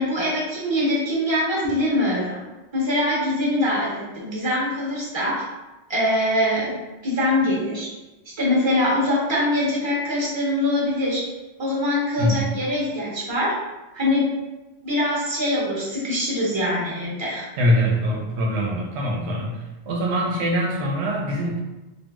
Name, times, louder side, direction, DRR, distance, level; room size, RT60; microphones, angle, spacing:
voice 1, 0.0-2.4 2.7-3.9 4.2-5.4 5.9-6.7 7.0-7.9 8.4-11.2 11.6-13.5 13.9-14.3 14.8-17.5, left 1 dB, 25° right, -5 dB, 0.9 m, -23 dB
voice 2, 12.2-12.5 17.6-19.5 19.9-21.6, equal, 70° right, -1 dB, 0.9 m, -23 dB
2.9 x 2.6 x 2.3 m, 1.1 s
omnidirectional pair, 1.2 m